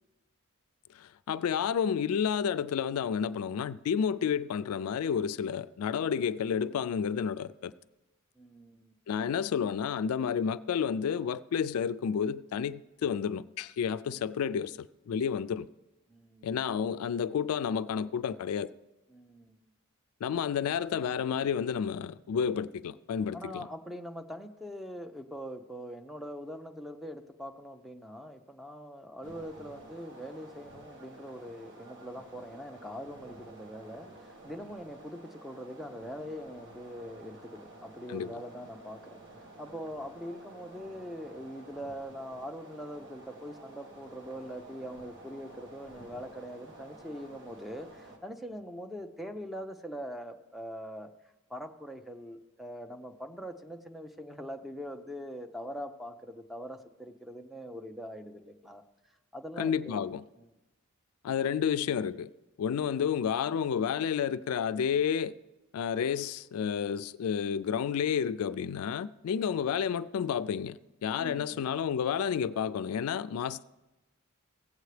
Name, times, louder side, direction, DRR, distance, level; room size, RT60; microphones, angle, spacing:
voice 1, 0.9-7.7 9.1-15.7 16.4-18.7 20.2-23.7 38.1-38.3 59.6-60.2 61.2-62.3 62.6-65.3 65.7-73.6, left 7 dB, 80° left, 0.3 m, -30 dB
voice 2, 8.4-9.0 14.0-14.2 16.1-16.6 19.1-19.7 23.3-39.2 39.6-51.1 51.5-58.8 59.3-60.1 60.4-60.6 71.2-71.6, equal, ahead, 0.5 m, -43 dB
sound 1, 29.2-48.2, right 2 dB, 60° right, 1.4 m, -51 dB
16.5 x 8.0 x 3.3 m
head